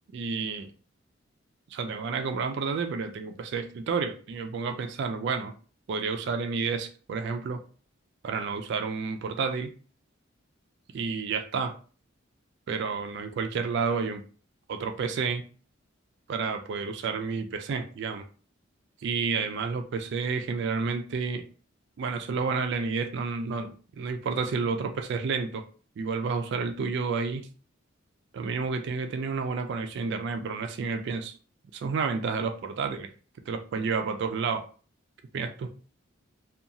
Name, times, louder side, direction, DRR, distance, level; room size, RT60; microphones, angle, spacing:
voice 1, 0.1-0.7 1.7-5.5 5.9-7.6 8.2-9.7 10.9-11.7 12.7-14.2 14.7-15.4 16.3-18.2 19.0-21.4 22.0-23.7 24.0-25.6 26.0-27.4 28.3-31.3 31.7-33.1 33.5-34.6 35.3-35.7, right 5 dB, 60° right, 6 dB, 0.3 m, -30 dB
2.8 x 2.3 x 2.6 m, 0.40 s
head